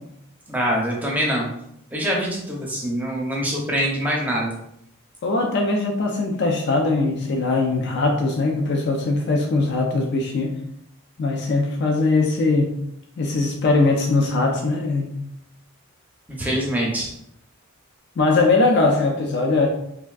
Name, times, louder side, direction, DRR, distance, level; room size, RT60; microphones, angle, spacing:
voice 1, 0.5-1.5 1.9-4.5 16.3-17.1, equal, 10° right, -2 dB, 0.5 m, -24 dB
voice 2, 5.2-10.6 11.2-12.7 13.2-15.1 18.2-19.7, left 3 dB, 50° left, 1 dB, 0.4 m, -21 dB
3.4 x 2.5 x 2.3 m, 0.76 s
head